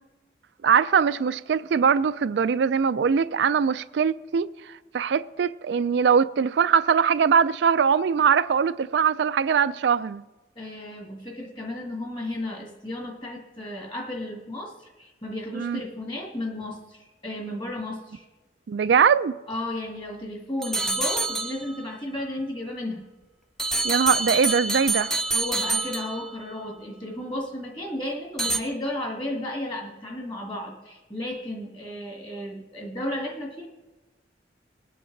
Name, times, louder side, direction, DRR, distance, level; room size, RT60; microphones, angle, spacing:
voice 1, 0.6-4.5 4.9-10.2 15.5-15.8 18.7-19.3 23.8-25.1, right 6 dB, 75° right, 0.4 m, -21 dB
voice 2, 10.6-18.3 19.5-23.1 25.3-33.7, left 1 dB, 25° left, 2.0 m, -34 dB
sound 1, 20.6-22.0 23.6-26.6 28.4-28.6, right 2 dB, ahead, 0.6 m, -27 dB
20.5 x 8.5 x 3.9 m
head